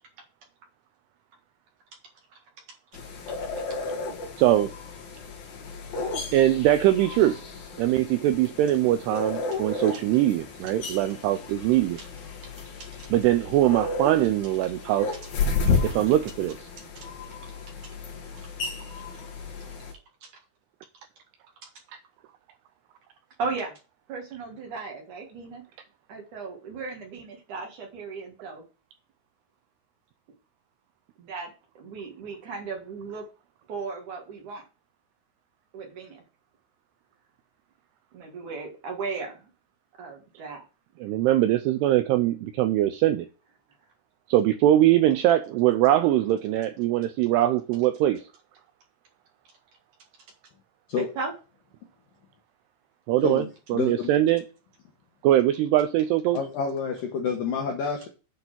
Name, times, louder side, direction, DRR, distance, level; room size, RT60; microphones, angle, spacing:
sound 1, 2.9-19.9, left 4 dB, 60° left, 3.5 m, -33 dB
voice 1, 4.4-4.7 6.3-7.4 7.8-12.0 13.1-15.1 15.8-16.6 41.0-43.3 44.3-48.2 53.1-53.4 53.7-54.4 55.2-56.4, right 13 dB, 85° right, 2.4 m, -22 dB
voice 2, 23.4-23.7 24.1-25.6 26.1-28.6 31.2-33.2 33.7-34.6 35.7-36.2 38.1-39.5 40.0-40.7 51.0-51.3, right 4 dB, 55° right, 2.5 m, -36 dB
voice 3, 53.2-54.1 56.3-58.1, left 5 dB, 80° left, 2.0 m, -29 dB
8.6 x 4.1 x 6.0 m
omnidirectional pair, 5.3 m